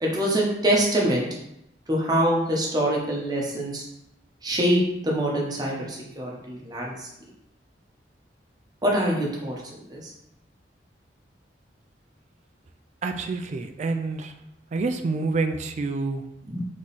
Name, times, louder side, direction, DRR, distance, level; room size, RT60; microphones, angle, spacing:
voice 1, 0.0-1.3 1.9-3.9 4.4-7.1 8.8-10.1 16.4-16.6, right 1 dB, 20° right, -3 dB, 0.9 m, -25 dB
voice 2, 13.0-14.3 14.7-16.2, right 3 dB, 40° right, 6 dB, 0.3 m, -27 dB
3.7 x 3.0 x 4.0 m, 0.82 s
head